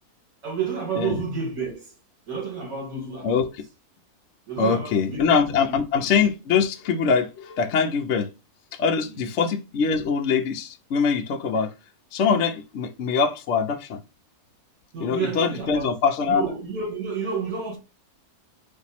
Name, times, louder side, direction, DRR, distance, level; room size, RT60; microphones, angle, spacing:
voice 1, 0.4-1.9 2.3-3.5 4.5-6.0 9.1-9.3 14.9-16.0 16.2-17.8, right 5 dB, 65° right, 2.3 m, -31 dB
voice 2, 4.6-8.3 8.7-11.7 12.1-14.0 15.0-16.4, left 5 dB, 60° left, 0.8 m, -23 dB
4.4 x 2.6 x 4.1 m
omnidirectional pair, 1.6 m